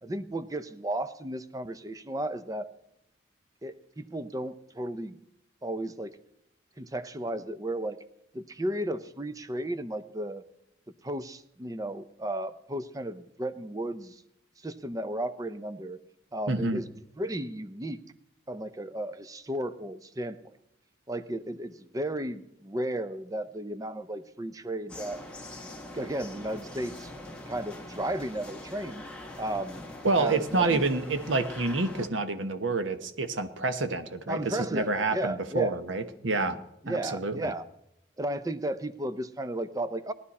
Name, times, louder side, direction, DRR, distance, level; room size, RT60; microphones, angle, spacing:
voice 1, 0.0-2.7 3.6-5.2 5.6-6.1 6.8-8.0 8.3-10.4 11.0-14.2 14.6-16.0 16.3-16.9 17.2-18.0 18.5-20.6 21.1-25.2 25.9-27.1 27.5-29.1 29.4-29.9 30.2-30.8 34.3-35.8 36.8-37.7 38.2-40.1, right 1 dB, 20° right, 13 dB, 0.6 m, -34 dB
voice 2, 16.5-16.8 30.0-36.6 36.9-37.5, right 3 dB, 85° right, 10 dB, 1.1 m, -28 dB
sound 1, 24.9-32.1, left 1 dB, 5° left, 1.5 m, -43 dB
18.0 x 11.0 x 4.2 m, 0.81 s
head